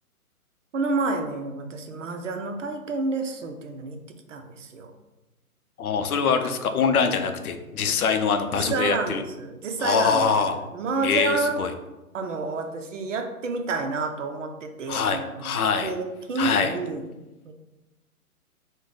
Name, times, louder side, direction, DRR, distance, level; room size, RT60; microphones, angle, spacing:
voice 1, 0.7-4.9 8.5-11.6 12.1-15.5 15.8-17.0 17.4-17.5, right 3 dB, 55° right, 5 dB, 0.5 m, -29 dB
voice 2, 5.8-9.2 9.8-10.6 11.0-11.7 14.9-15.9 16.4-16.8, left 5 dB, 70° left, 7 dB, 0.6 m, -24 dB
3.1 x 2.1 x 3.8 m, 1.0 s
hypercardioid pair, 145°, 45 cm